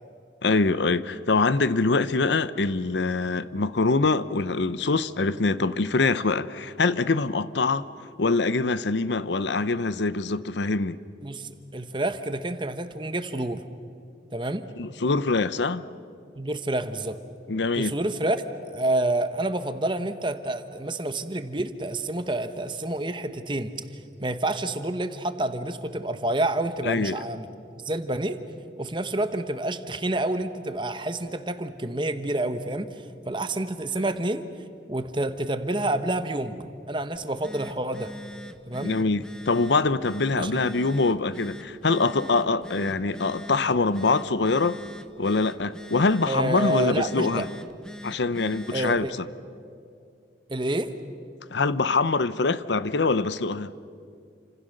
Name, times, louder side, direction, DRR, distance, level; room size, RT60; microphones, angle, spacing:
voice 1, 0.4-7.9 8.2-11.0 14.8-15.8 17.5-17.9 26.8-27.2 38.8-44.8 45.2-47.4 48.0-49.1 51.5-53.7, left 3 dB, 80° left, 0.7 m, -24 dB
voice 2, 11.2-13.6 14.3-14.7 16.4-17.2 17.8-23.7 24.2-27.5 27.8-28.4 28.8-34.5 34.9-36.6 36.9-38.1 38.7-38.9 40.4-40.6 46.3-47.5 48.7-49.1 50.5-50.9, right 1 dB, 25° right, 1.1 m, -28 dB
Telephone, 37.1-49.1, left 1 dB, 5° left, 0.9 m, -42 dB
29.0 x 26.5 x 6.6 m
head